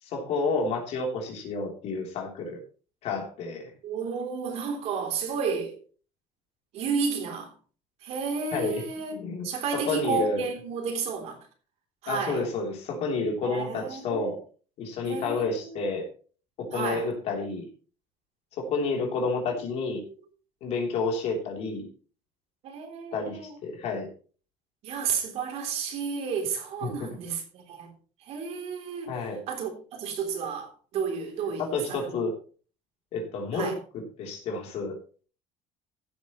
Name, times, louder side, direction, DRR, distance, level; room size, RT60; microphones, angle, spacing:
voice 1, 0.0-2.6 3.0-3.7 8.5-8.8 9.1-10.5 12.0-14.4 14.8-16.1 16.6-17.7 18.5-20.0 20.6-21.9 23.1-24.1 26.8-27.1 29.1-29.4 31.6-32.3 33.1-34.9, left 3 dB, 55° left, 3.4 m, -30 dB
voice 2, 3.8-5.8 6.7-7.5 8.0-9.1 9.4-11.4 12.0-12.4 13.4-14.3 15.0-15.9 16.7-17.1 22.6-23.6 24.8-27.9 28.3-29.1 29.5-32.2 33.5-33.7, right 5 dB, 60° right, 3.3 m, -32 dB
15.5 x 8.2 x 3.1 m
cardioid pair, 135°, 12 cm